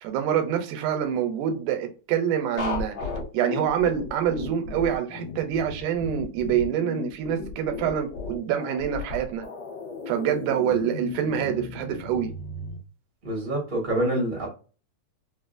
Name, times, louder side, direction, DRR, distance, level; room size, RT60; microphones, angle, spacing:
voice 1, 0.0-3.0 3.3-9.5 10.1-12.3, right 9 dB, 85° right, 2.2 m, -26 dB
sound 1, 2.6-12.8, left 4 dB, 60° left, 1.0 m, -35 dB
voice 2, 13.2-14.5, right 1 dB, 70° right, 0.4 m, -26 dB
4.8 x 2.1 x 2.4 m
omnidirectional pair, 3.5 m